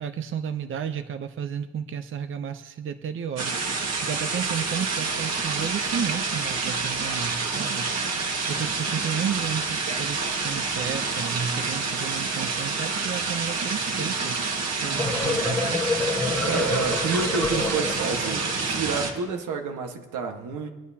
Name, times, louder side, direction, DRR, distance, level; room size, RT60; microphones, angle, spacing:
voice 1, 0.0-7.9 8.5-14.5 14.8-15.8, right 8 dB, 45° right, 10 dB, 0.6 m, -32 dB
sound 1, 3.4-19.1, right 4 dB, 60° right, 1.8 m, -28 dB
sound 2, 14.7-18.6, left 3 dB, 5° left, 1.4 m, -28 dB
voice 2, 16.4-20.7, right 5 dB, 80° right, 3 dB, 1.5 m, -29 dB
22.0 x 9.2 x 2.8 m, 1.2 s
cardioid pair, 90°, 30 cm